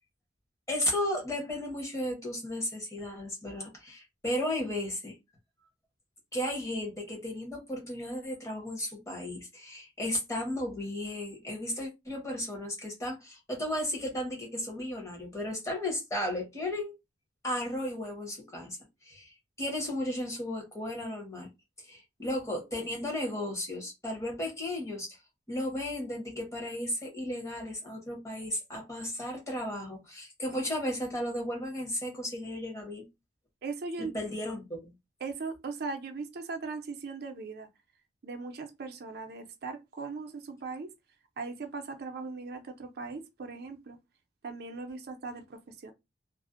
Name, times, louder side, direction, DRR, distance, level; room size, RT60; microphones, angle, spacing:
voice 1, 0.7-5.2 6.3-16.9 17.4-18.8 19.0-21.5 21.9-25.2 25.5-33.1 34.0-34.9, left 1 dB, 15° left, 0.9 m, -34 dB
voice 2, 33.6-34.1 35.2-37.7 38.2-40.9 41.4-44.0 44.4-45.9, right 4 dB, 60° right, 0.5 m, -39 dB
2.4 x 2.0 x 2.4 m
head